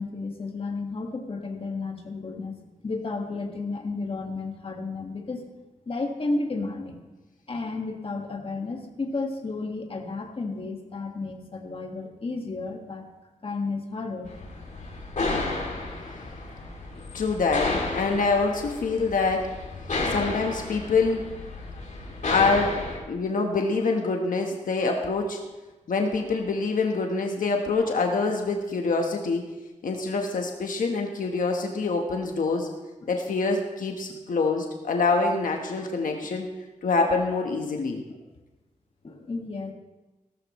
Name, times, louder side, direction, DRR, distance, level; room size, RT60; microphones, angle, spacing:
voice 1, 0.0-2.5 2.8-5.4 5.8-7.0 7.5-13.0 13.4-14.3 16.1-16.2 17.0-17.1 22.1-22.2 33.0-33.1 39.0-39.7, left 3 dB, 40° left, 1 dB, 1.8 m, -32 dB
sound 1, 14.2-23.0, left 2 dB, 60° left, 2.7 m, -32 dB
voice 2, 17.1-19.5 20.0-21.2 22.3-25.4 25.9-29.5 29.8-32.7 33.1-36.5 36.8-38.0, left 3 dB, 80° left, 2 dB, 1.2 m, -25 dB
17.0 x 13.5 x 3.1 m, 1.1 s
wide cardioid pair, 115°, 14 cm